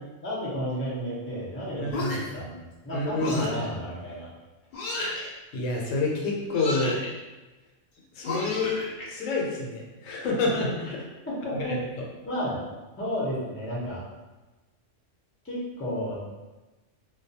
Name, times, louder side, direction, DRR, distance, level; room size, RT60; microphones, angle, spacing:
voice 1, 0.2-4.3 11.3-11.7 12.2-12.6 13.0-14.0 15.4-16.1, equal, 20° left, -7 dB, 0.4 m, -32 dB
voice 2, 1.7-2.2 2.9-3.7 5.1-7.0 8.1-8.8 9.1-11.0 11.5-12.1, left 3 dB, 80° left, -1 dB, 0.9 m, -28 dB
sound 1, 1.9-2.4 3.2-3.7 4.7-5.3 6.5-7.1 8.2-9.0, left 2 dB, 60° left, 0.7 m, -32 dB
2.3 x 2.1 x 2.7 m, 1.1 s
omnidirectional pair, 1.3 m